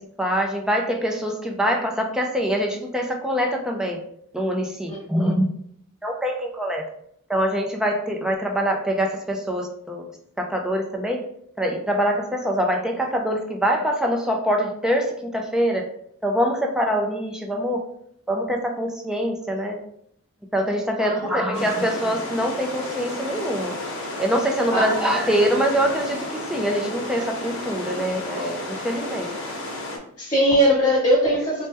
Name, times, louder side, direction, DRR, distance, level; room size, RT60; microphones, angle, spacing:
voice 1, 0.0-4.0 4.3-5.4 6.0-6.8 7.3-10.0 10.4-11.2 11.6-15.9 16.2-17.8 18.3-19.8 20.5-23.8 24.2-29.3, equal, 5° right, 2 dB, 0.4 m, -24 dB
voice 2, 21.0-21.5 24.7-25.0 30.2-31.7, equal, 20° left, -8 dB, 0.9 m, -20 dB
sound 1, 21.5-30.0, left 1 dB, 60° left, 1.0 m, -32 dB
4.2 x 2.1 x 3.4 m, 0.69 s
head